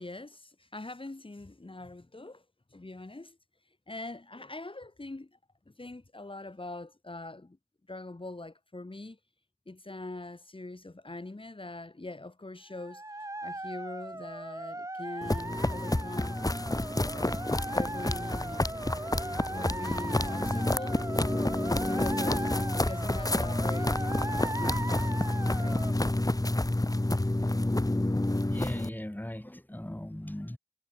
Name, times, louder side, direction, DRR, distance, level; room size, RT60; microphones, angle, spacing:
voice 1, 0.0-2.4 2.7-3.4 3.9-5.3 5.7-7.6 7.9-9.2 9.7-13.0 13.4-16.4 17.1-17.4 17.7-18.7 19.5-21.2 21.6-25.1 25.5-25.8 27.2-27.3, left 2 dB, 70° left, 5.2 m, -43 dB
sound 1, 12.7-25.9, right 1 dB, 35° right, 1.2 m, -38 dB
sound 2, 15.2-28.9, left 1 dB, 40° left, 2.3 m, -29 dB
voice 2, 28.3-30.6, left 1 dB, 20° left, 3.3 m, -38 dB
wide cardioid pair, 45°, 9 cm